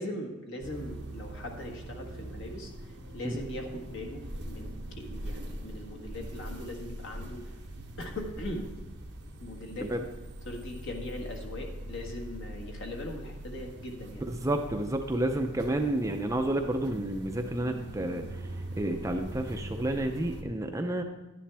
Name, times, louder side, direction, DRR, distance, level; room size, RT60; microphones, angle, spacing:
voice 1, 0.0-7.5 8.0-8.7 9.4-9.9 10.4-14.3, left 1 dB, 55° left, 2 dB, 1.5 m, -40 dB
sound 1, 0.6-20.4, right 1 dB, 50° right, 1.2 m, -42 dB
voice 2, 14.3-18.2 18.8-21.0, right 1 dB, 15° right, 4 dB, 0.5 m, -30 dB
11.5 x 10.0 x 3.4 m, 1.1 s
head